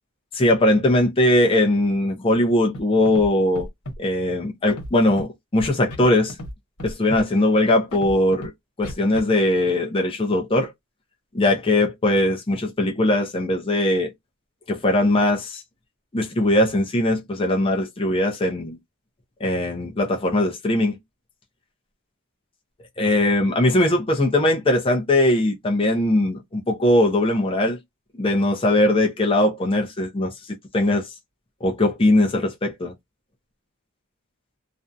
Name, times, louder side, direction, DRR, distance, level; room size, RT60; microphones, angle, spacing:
voice 1, 0.3-3.7 4.0-6.3 6.8-8.5 8.8-10.7 11.3-14.1 14.7-15.6 16.1-18.8 19.4-21.0 23.0-27.8 28.2-31.1 31.6-32.9, left 1 dB, 25° left, 0.6 m, -20 dB
Scratching (performance technique), 2.7-2.8 3.1-3.3 3.5-4.0 4.7-5.2 5.6-6.0 6.3-6.5 6.8-7.2 7.9-8.5 8.8-9.2, equal, 80° left, 1.1 m, -34 dB
2.5 x 2.2 x 2.6 m
head